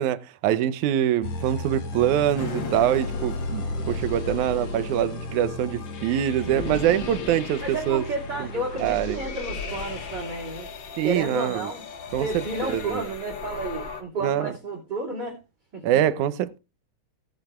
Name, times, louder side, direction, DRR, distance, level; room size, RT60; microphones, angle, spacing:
voice 1, 0.0-8.0 8.4-8.5 8.8-9.2 11.0-11.7 12.1-13.0 14.2-14.5 15.8-16.6, right 11 dB, 85° right, 2.2 m, -24 dB
sound 1, 1.2-10.4, left 2 dB, 65° left, 3.3 m, -35 dB
sound 2, 2.4-14.0, left 4 dB, 45° left, 1.9 m, -37 dB
voice 2, 7.3-10.7 11.0-11.8 12.2-15.4 15.7-15.9, right 2 dB, 35° right, 3.2 m, -31 dB
17.5 x 9.0 x 2.4 m
omnidirectional pair, 3.4 m